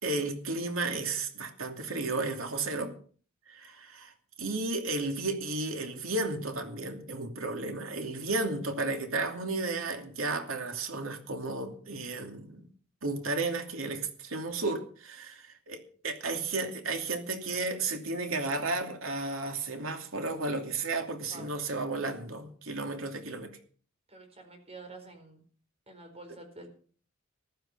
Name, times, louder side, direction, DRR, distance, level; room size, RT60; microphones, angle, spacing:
voice 1, 0.0-2.9 3.5-4.1 4.4-12.7 13.0-23.6, right 3 dB, 85° right, 5 dB, 2.7 m, -33 dB
voice 2, 24.1-25.4 25.9-26.7, right 2 dB, 30° right, 6 dB, 4.4 m, -48 dB
15.0 x 12.5 x 5.5 m, 0.43 s
head